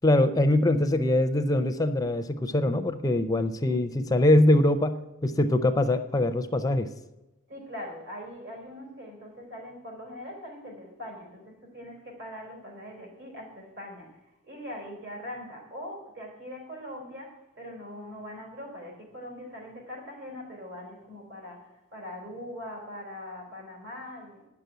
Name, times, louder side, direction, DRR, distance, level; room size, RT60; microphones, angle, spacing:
voice 1, 0.0-6.9, left 1 dB, 20° left, 9 dB, 0.5 m, -23 dB
voice 2, 7.5-24.5, left 1 dB, 60° right, 0 dB, 4.1 m, -42 dB
9.6 x 6.8 x 9.0 m, 1.0 s
head